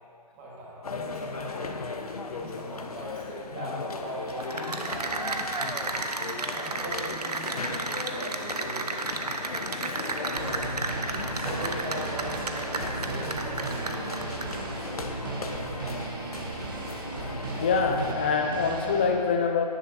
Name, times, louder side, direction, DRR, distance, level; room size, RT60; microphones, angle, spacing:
voice 1, 0.4-1.9 2.3-5.2 5.7-5.8 6.2-9.4 9.8-10.6 11.4-14.9, right 1 dB, 15° right, -5 dB, 1.7 m, -40 dB
sound 1, 0.8-18.1, left 4 dB, 60° left, 0.9 m, -37 dB
Cheering / Applause, 4.3-14.7, right 3 dB, 70° right, 1.0 m, -33 dB
sound 2, 10.3-19.1, right 3 dB, 30° right, 1.2 m, -36 dB
voice 2, 17.2-19.6, left 5 dB, 15° left, 4 dB, 0.5 m, -25 dB
17.5 x 11.0 x 2.7 m, 2.4 s
figure-of-eight pair, 155°, 21 cm